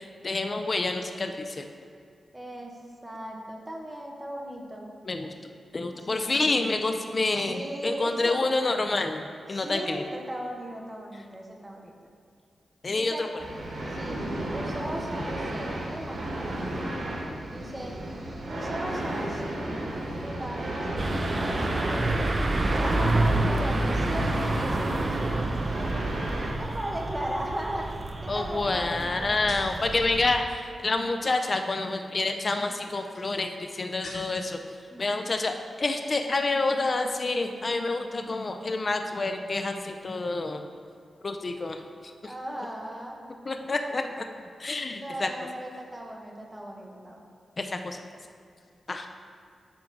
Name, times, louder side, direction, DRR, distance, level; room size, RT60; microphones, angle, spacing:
voice 1, 0.0-1.7 5.1-5.3 5.7-10.0 12.8-13.4 17.3-17.4 22.8-23.1 28.3-40.7 41.2-42.3 43.5-44.2 44.6-45.3 47.6-48.0 48.9-49.1, left 3 dB, 30° left, 6 dB, 0.4 m, -28 dB
voice 2, 2.3-4.9 6.1-6.5 7.3-8.4 9.5-11.9 12.9-13.3 13.9-14.2 14.5-16.5 17.5-18.0 18.5-19.8 20.2-22.3 22.7-26.2 26.6-27.9 28.2-29.4 34.9-35.1 42.2-43.2 44.9-47.2, right 1 dB, 15° right, 0 dB, 1.0 m, -37 dB
sound 1, 13.4-26.5, right 1 dB, 90° right, 1.9 m, -32 dB
sound 2, 21.0-30.4, right 2 dB, 30° right, 0.5 m, -29 dB
sound 3, 27.7-30.1 30.4-30.9 32.2-34.6 34.9-35.6 35.8-36.1, left 2 dB, 65° left, 1.4 m, -47 dB
8.7 x 3.7 x 5.9 m, 2.3 s
wide cardioid pair, 150°, 0 cm